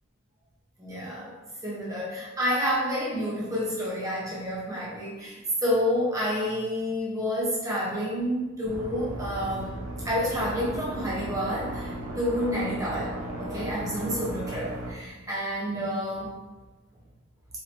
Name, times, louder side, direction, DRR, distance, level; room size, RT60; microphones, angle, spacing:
voice 1, 0.8-1.3 1.6-9.8 10.0-16.3, equal, 15° right, -7 dB, 1.0 m, -29 dB
sound 1, 8.6-14.9, right 1 dB, 75° right, 0.7 m, -36 dB
4.3 x 3.0 x 2.9 m, 1.2 s
head